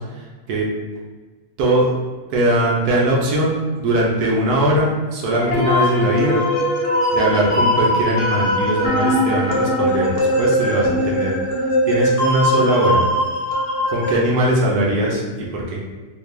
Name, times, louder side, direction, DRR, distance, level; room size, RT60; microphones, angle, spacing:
voice 1, 1.6-1.9 2.3-6.4 7.1-11.3 11.9-13.0 13.9-15.8, right 1 dB, 85° right, -3 dB, 1.3 m, -20 dB
sound 1, 5.3-14.1, equal, 55° left, 1.0 m, -20 dB
4.1 x 2.3 x 3.2 m, 1.4 s
omnidirectional pair, 1.6 m